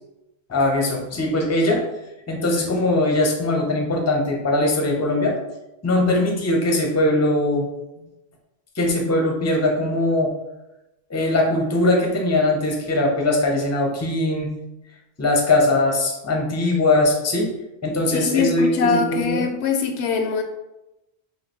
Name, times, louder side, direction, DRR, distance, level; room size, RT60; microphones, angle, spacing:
voice 1, 0.5-1.9 2.3-5.4 5.8-7.6 8.8-10.3 11.1-14.5 15.2-17.5 17.8-19.4, left 2 dB, 20° left, 0 dB, 0.6 m, -21 dB
voice 2, 18.1-20.4, left 5 dB, 75° left, 5 dB, 0.8 m, -22 dB
5.0 x 2.7 x 3.0 m, 0.96 s
omnidirectional pair, 1.1 m